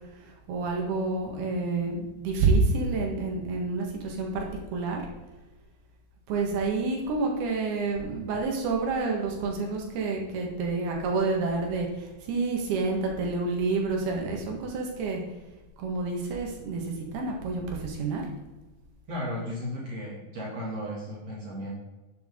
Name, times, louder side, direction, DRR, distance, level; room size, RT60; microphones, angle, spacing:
voice 1, 0.1-5.1 6.3-15.2 15.8-18.3, right 3 dB, 80° right, 1 dB, 3.6 m, -28 dB
voice 2, 19.1-21.7, equal, 45° right, -5 dB, 3.2 m, -35 dB
11.0 x 8.7 x 3.8 m, 1.1 s
omnidirectional pair, 4.4 m